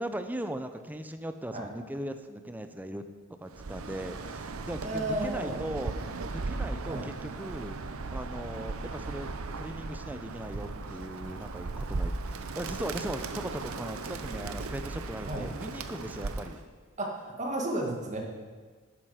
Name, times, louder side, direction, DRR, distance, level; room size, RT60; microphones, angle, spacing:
voice 1, 0.0-3.0 3.4-5.9 6.3-7.8 8.1-9.3 9.6-16.6, right 1 dB, 10° right, 8 dB, 0.6 m, -38 dB
Bird, 3.5-16.6, right 3 dB, 85° right, 0.7 m, -37 dB
voice 2, 4.8-5.6 6.9-7.1 15.3-15.5 17.0-18.2, right 1 dB, 35° right, 0 dB, 2.0 m, -33 dB
12.0 x 8.9 x 5.0 m, 1.5 s
head